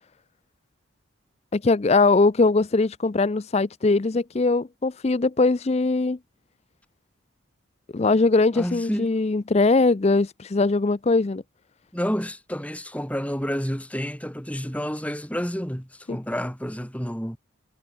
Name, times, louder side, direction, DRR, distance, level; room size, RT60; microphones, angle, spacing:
voice 1, 1.5-6.2 7.9-11.4 16.1-16.2, left 3 dB, 30° left, 0.4 m, -21 dB
voice 2, 8.5-9.2 11.9-17.4, equal, 5° left, 6.5 m, -29 dB
head